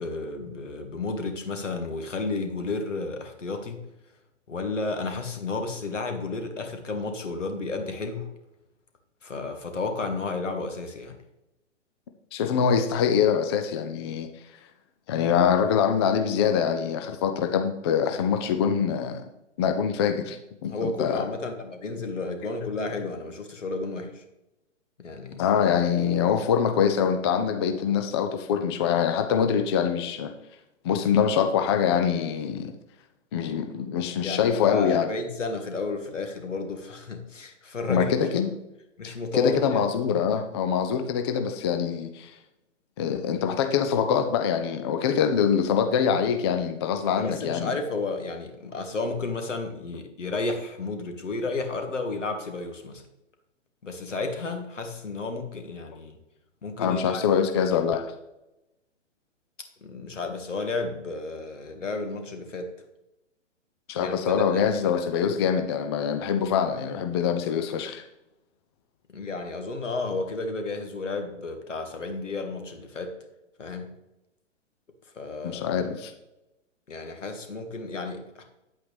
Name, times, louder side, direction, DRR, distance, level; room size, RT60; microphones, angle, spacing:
voice 1, 0.0-3.8 4.5-8.3 9.2-11.2 20.7-24.2 25.0-25.5 34.2-38.1 39.0-39.8 47.2-53.0 53.8-56.2 56.6-57.2 59.8-62.7 63.9-64.6 69.1-73.1 73.6-73.9 75.1-75.7 76.9-78.4, left 3 dB, 75° left, 5 dB, 1.8 m, -32 dB
voice 2, 12.3-14.3 15.1-19.2 19.6-20.4 20.6-21.2 25.4-30.3 30.8-32.7 33.3-35.1 37.9-38.5 39.0-42.3 43.0-47.7 56.8-58.1 63.9-68.0 75.4-76.1, left 7 dB, 20° left, 7 dB, 0.4 m, -24 dB
9.0 x 8.3 x 3.4 m, 0.91 s
figure-of-eight pair, 120°, 37 cm